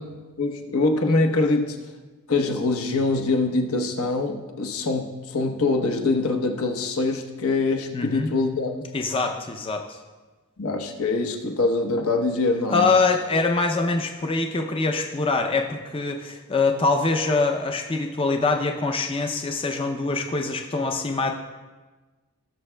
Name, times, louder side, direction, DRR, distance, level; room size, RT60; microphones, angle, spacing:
voice 1, 0.0-1.8 2.3-8.8 10.6-12.9, left 3 dB, 70° left, 3 dB, 0.9 m, -24 dB
voice 2, 7.9-8.3 8.9-10.0 12.7-21.3, left 3 dB, 25° left, 3 dB, 0.5 m, -24 dB
17.5 x 6.8 x 2.2 m, 1.3 s
head